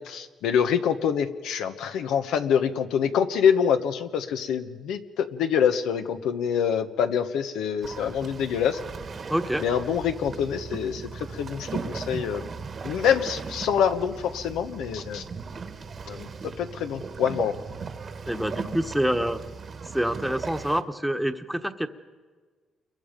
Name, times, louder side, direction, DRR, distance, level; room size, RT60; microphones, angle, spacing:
voice 1, 0.0-8.8 9.6-11.0 11.3-12.5 12.8-15.2 16.1-16.3 16.6-17.6, left 8 dB, 85° left, 8 dB, 1.2 m, -25 dB
sound 1, 7.8-20.8, right 5 dB, 45° right, 1.3 m, -37 dB
voice 2, 9.3-9.6 18.3-19.4 19.9-21.9, equal, 5° right, 8 dB, 1.2 m, -26 dB
28.5 x 22.5 x 5.3 m, 1.5 s
cardioid pair, 90°, 0 cm